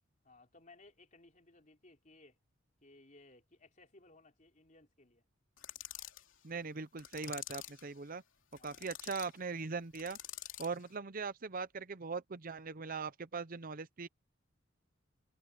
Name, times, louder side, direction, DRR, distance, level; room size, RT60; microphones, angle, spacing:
voice 1, 0.2-2.4 2.8-5.2 8.6-8.9, left 2 dB, 40° left, 3.8 m, -61 dB
sound 1, 5.6-6.2 7.0-7.8 8.5-9.3 9.9-10.8, left 12 dB, 75° left, 2.8 m, -47 dB
voice 2, 6.4-8.2 8.6-10.2 10.6-14.1, right 4 dB, 45° right, 0.7 m, -40 dB
head